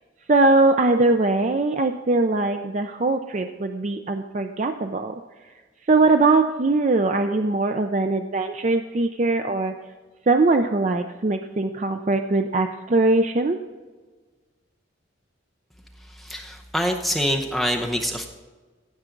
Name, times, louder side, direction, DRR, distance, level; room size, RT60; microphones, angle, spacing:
voice 1, 0.3-5.2 5.9-9.7 10.3-13.6, right 3 dB, 35° right, 6 dB, 0.5 m, -21 dB
voice 2, 16.2-18.3, equal, ahead, 1 dB, 0.8 m, -25 dB
16.0 x 6.9 x 3.8 m, 1.4 s
head